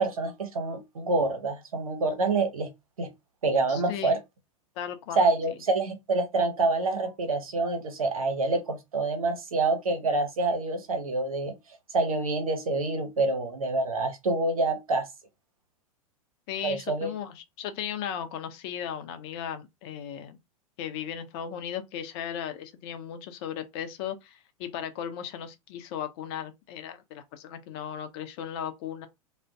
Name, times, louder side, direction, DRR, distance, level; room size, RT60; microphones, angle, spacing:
voice 1, 0.0-2.7 3.0-3.1 3.4-4.2 5.2-11.6 11.9-15.1 16.6-17.1, right 3 dB, 75° right, 0.9 m, -27 dB
voice 2, 3.7-4.2 4.8-5.2 16.5-20.4 20.8-29.1, left 9 dB, 45° left, 0.6 m, -36 dB
2.5 x 2.2 x 3.4 m
figure-of-eight pair, 95°, 18 cm